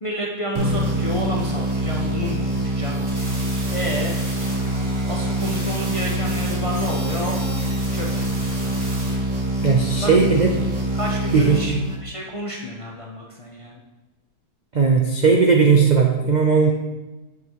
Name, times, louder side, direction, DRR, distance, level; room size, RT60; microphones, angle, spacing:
voice 1, 0.0-3.0 3.7-4.2 4.6-4.8 5.1-7.3 7.9-8.3 10.0-10.1 10.9-13.8, left 1 dB, 40° left, -2 dB, 0.5 m, -30 dB
sound 1, 0.5-12.3, right 1 dB, 35° right, 1.0 m, -25 dB
sound 2, 2.9-9.1, right 1 dB, 65° right, 2.8 m, -36 dB
voice 2, 9.6-10.5 11.3-11.7 14.7-16.7, right 5 dB, 85° right, 1 dB, 0.4 m, -17 dB
7.9 x 6.4 x 3.0 m, 1.1 s
omnidirectional pair, 1.7 m